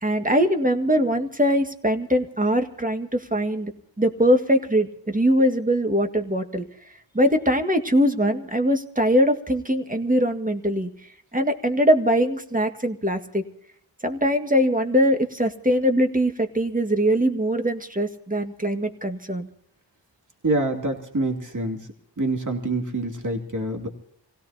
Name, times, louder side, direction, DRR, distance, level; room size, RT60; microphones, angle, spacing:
voice 1, 0.0-3.7 4.0-6.7 7.1-10.9 11.3-13.4 14.0-19.5, equal, 20° right, 6 dB, 1.9 m, -22 dB
voice 2, 20.4-21.9 22.2-23.9, right 2 dB, 40° right, 3 dB, 2.8 m, -26 dB
27.5 x 17.0 x 2.8 m, 0.67 s
wide cardioid pair, 55°, 44 cm